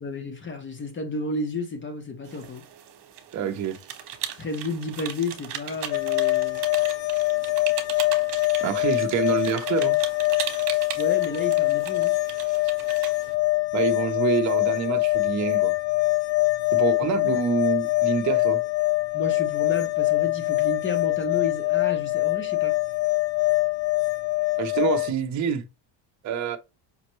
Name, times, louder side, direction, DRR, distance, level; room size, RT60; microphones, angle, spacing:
voice 1, 0.0-2.6 4.4-6.6 11.0-12.1 19.1-22.8, left 3 dB, 25° left, 0.7 m, -32 dB
sound 1, 2.2-13.3, right 10 dB, 60° right, 1.1 m, -38 dB
voice 2, 3.3-3.8 8.6-10.0 13.7-15.7 16.7-18.6 24.6-25.6 26.2-26.6, right 7 dB, 35° right, 0.6 m, -26 dB
sound 2, 5.9-25.1, left 21 dB, 85° left, 0.6 m, -24 dB
5.2 x 2.1 x 3.0 m
cardioid pair, 120°, 48 cm